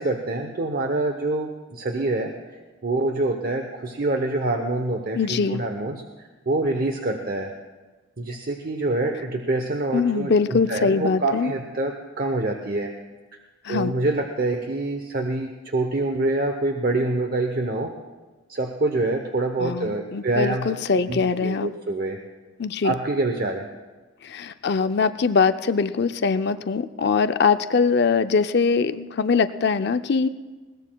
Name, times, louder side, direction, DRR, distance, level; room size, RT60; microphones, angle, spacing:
voice 1, 0.0-2.3 2.8-7.5 8.2-12.9 13.7-17.9 18.5-20.7 21.1-22.2 22.8-23.7, right 2 dB, 45° right, 4 dB, 0.8 m, -26 dB
voice 2, 5.1-5.6 9.9-11.5 13.6-13.9 19.6-21.7 22.6-22.9 24.2-30.3, left 5 dB, 50° left, 11 dB, 0.5 m, -22 dB
21.0 x 18.5 x 2.3 m, 1.3 s
head